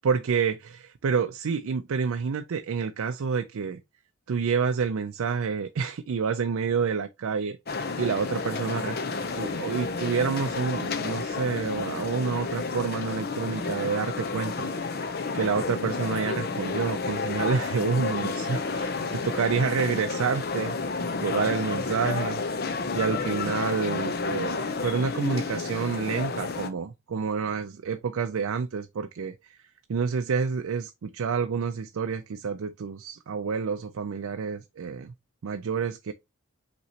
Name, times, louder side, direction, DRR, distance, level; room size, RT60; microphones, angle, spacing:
voice 1, 0.0-3.8 4.3-7.6 8.0-9.0 9.3-20.8 21.2-22.4 22.9-29.6 29.9-35.1 35.4-36.1, right 5 dB, 80° right, 0.4 m, -28 dB
sound 1, 7.7-26.7, left 4 dB, 45° left, 0.6 m, -31 dB
5.6 x 3.0 x 2.8 m
head